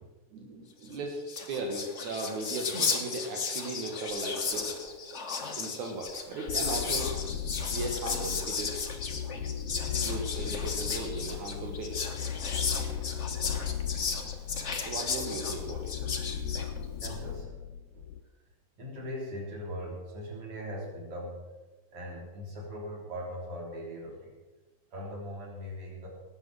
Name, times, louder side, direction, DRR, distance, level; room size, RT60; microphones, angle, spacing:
voice 1, 0.3-1.2 1.5-4.8 5.5-7.1 7.7-8.8 10.0-12.0 14.8-15.9, right 2 dB, 80° right, 1 dB, 3.0 m, -37 dB
Whispering, 0.9-1.0 1.2-17.2, left 5 dB, 45° left, 0.9 m, -35 dB
sound 1, 6.5-18.2, left 9 dB, 80° left, 2.0 m, -36 dB
voice 2, 17.0-17.6 17.9-18.1 18.8-21.4 21.9-24.4 24.9-26.1, equal, 50° right, -2 dB, 4.4 m, -40 dB
19.0 x 8.2 x 6.2 m, 1.2 s
omnidirectional pair, 3.4 m